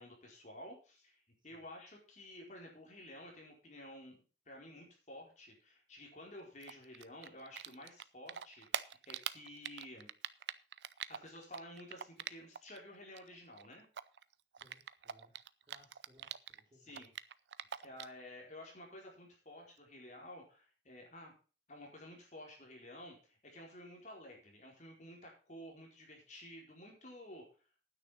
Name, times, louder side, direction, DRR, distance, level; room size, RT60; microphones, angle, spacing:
voice 1, 0.0-10.1 11.1-13.9 16.8-17.1 17.8-21.3 21.7-27.4, left 1 dB, 40° left, 0 dB, 4.5 m, -52 dB
Typing, 6.6-8.0 8.3-12.8 13.0-16.6 16.9-18.2, right 9 dB, 75° right, 0.6 m, -43 dB
voice 2, 14.5-15.4 15.7-17.0, equal, 25° right, 1 dB, 3.5 m, -66 dB
9.5 x 9.4 x 5.7 m, 0.36 s
head